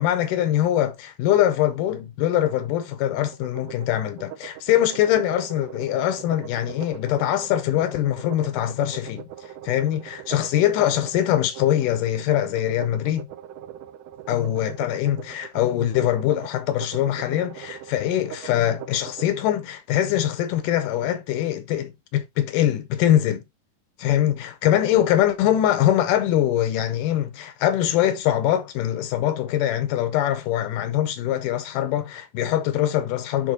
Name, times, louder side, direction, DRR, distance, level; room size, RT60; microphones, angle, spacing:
voice 1, 0.0-13.3 14.3-23.4 24.0-33.5, left 12 dB, 80° left, 2.1 m, -23 dB
sound 1, 3.3-19.3, right 11 dB, 80° right, 1.8 m, -40 dB
10.5 x 4.0 x 2.6 m
omnidirectional pair, 4.0 m